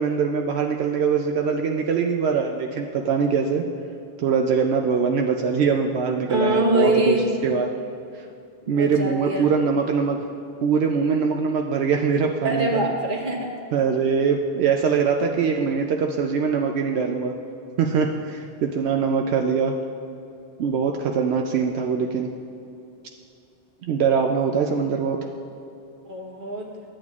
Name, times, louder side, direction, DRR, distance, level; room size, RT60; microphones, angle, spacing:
voice 1, 0.0-3.6 4.2-7.2 7.4-7.7 8.7-10.2 10.6-12.8 13.7-17.3 17.8-19.7 20.6-22.3 23.8-25.2, right 6 dB, 80° right, 2 dB, 0.8 m, -22 dB
voice 2, 6.3-7.3 8.7-9.5 12.4-13.5 26.0-26.7, right 2 dB, 50° right, -1 dB, 1.3 m, -24 dB
13.0 x 8.7 x 2.4 m, 2.7 s
omnidirectional pair, 1.1 m